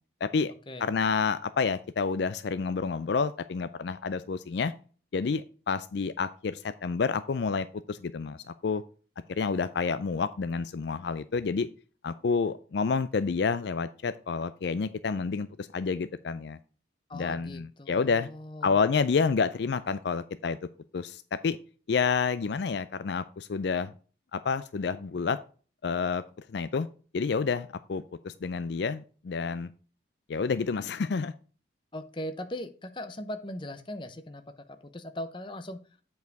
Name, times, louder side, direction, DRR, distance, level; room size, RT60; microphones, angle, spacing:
voice 1, 0.2-0.5 0.8-4.7 5.1-8.4 8.6-8.8 9.4-11.7 12.0-16.6 17.1-18.3 18.6-20.6 20.9-21.6 21.9-23.9 24.3-25.4 25.8-26.9 27.1-29.7 30.3-31.3, left 5 dB, 60° left, 13 dB, 0.4 m, -29 dB
voice 2, 17.1-18.8 31.9-35.8, left 1 dB, 25° left, 9 dB, 0.8 m, -39 dB
8.1 x 4.7 x 4.7 m, 0.39 s
head